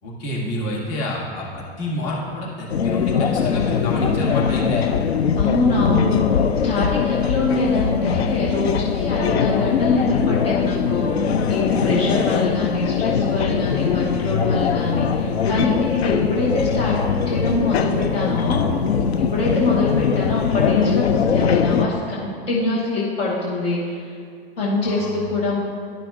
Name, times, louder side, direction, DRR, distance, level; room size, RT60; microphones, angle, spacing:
voice 1, 0.0-4.9 24.8-25.2, left 1 dB, 50° left, -4 dB, 2.0 m, -29 dB
sound 1, 2.7-21.9, left 6 dB, 90° left, 0.5 m, -21 dB
voice 2, 5.4-6.4 6.6-16.9 17.3-18.6 19.2-24.1 24.6-25.6, left 2 dB, 65° left, -5 dB, 1.6 m, -24 dB
11.5 x 5.9 x 2.5 m, 2.2 s
hypercardioid pair, 100°, 31 cm